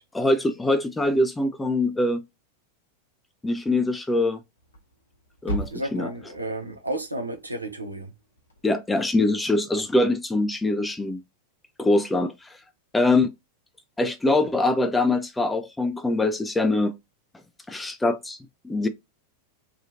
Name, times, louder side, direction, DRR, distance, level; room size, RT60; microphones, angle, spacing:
voice 1, 0.1-2.2 3.4-4.4 5.4-6.1 8.6-11.2 11.8-12.6 12.9-13.3 14.0-16.9 17.7-18.4 18.6-18.9, left 2 dB, 10° left, 0.3 m, -23 dB
Thump thud, 4.6-8.7, right 1 dB, 75° left, 0.9 m, -38 dB
voice 2, 5.7-8.1, right 1 dB, 85° right, 0.6 m, -32 dB
2.8 x 2.3 x 2.6 m
figure-of-eight pair, 90°, 0 cm